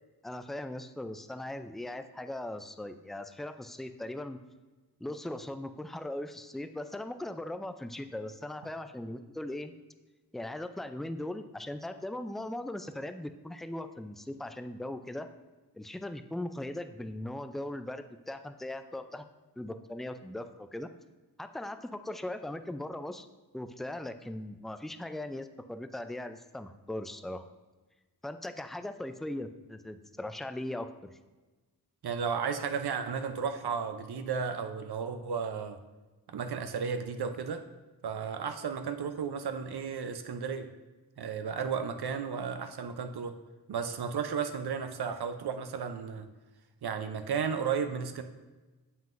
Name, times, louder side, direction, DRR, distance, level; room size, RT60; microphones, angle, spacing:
voice 1, 0.2-4.4 5.0-9.7 10.3-15.3 15.7-19.2 19.6-20.9 21.4-23.3 23.5-27.5 28.2-31.2, left 1 dB, ahead, 9 dB, 0.3 m, -39 dB
voice 2, 32.0-35.8 36.3-37.6 38.0-40.7 41.2-43.4 43.7-46.3 46.8-48.2, right 6 dB, 75° right, 8 dB, 0.6 m, -34 dB
7.4 x 5.7 x 2.5 m, 1.2 s
cardioid pair, 50°, 38 cm